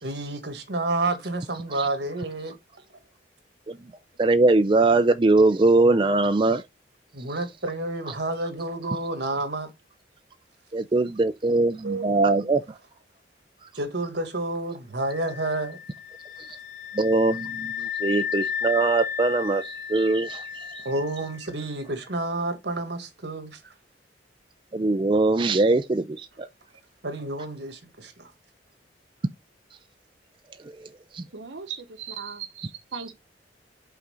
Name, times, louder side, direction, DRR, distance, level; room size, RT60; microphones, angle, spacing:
voice 1, 0.0-2.6 7.1-9.7 11.8-12.5 13.7-15.8 20.8-23.7 27.0-28.3, right 2 dB, 65° right, 1.7 m, -30 dB
voice 2, 4.2-6.6 10.7-12.6 17.0-20.6 24.7-26.3 31.1-31.2, right 2 dB, 25° right, 0.4 m, -21 dB
sound 1, 15.0-21.8, left 7 dB, 40° left, 1.3 m, -34 dB
voice 3, 31.3-33.1, right 6 dB, 80° right, 0.9 m, -37 dB
5.7 x 3.8 x 5.5 m
head